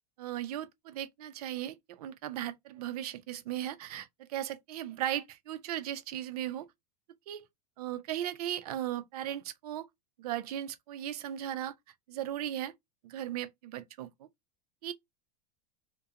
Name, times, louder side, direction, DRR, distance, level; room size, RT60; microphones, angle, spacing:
voice 1, 0.2-6.7 7.3-7.5 7.8-9.9 10.2-11.7 12.1-12.7 13.0-14.3 14.8-14.9, right 12 dB, 65° right, 0.5 m, -37 dB
2.4 x 2.2 x 2.7 m
supercardioid pair, 175°, 21 cm